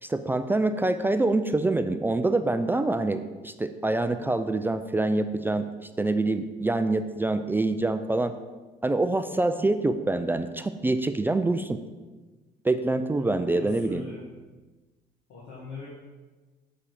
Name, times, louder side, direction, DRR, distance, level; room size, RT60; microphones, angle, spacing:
voice 1, 0.0-8.3 8.8-11.8 12.6-14.0, right 2 dB, 10° right, 9 dB, 0.3 m, -26 dB
voice 2, 13.1-14.2 15.3-15.9, left 3 dB, 80° left, -6 dB, 1.9 m, -41 dB
7.1 x 4.8 x 4.9 m, 1.3 s
cardioid pair, 110°, 17 cm